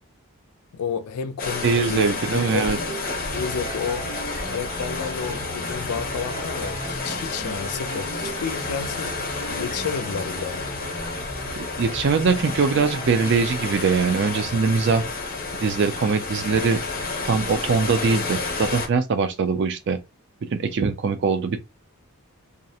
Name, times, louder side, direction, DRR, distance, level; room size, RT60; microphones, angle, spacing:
voice 1, 0.7-2.8 3.3-4.1 4.4-9.2 9.5-10.8, left 6 dB, 85° left, 0.4 m, -31 dB
sound 1, 1.4-18.9, left 3 dB, 40° left, 0.7 m, -30 dB
voice 2, 1.6-2.8 11.6-15.0 15.6-16.8 17.2-20.0 20.5-21.6, right 5 dB, 50° right, 0.4 m, -22 dB
sound 2, 1.8-13.3, right 2 dB, 70° right, 0.9 m, -38 dB
2.4 x 2.0 x 2.7 m
head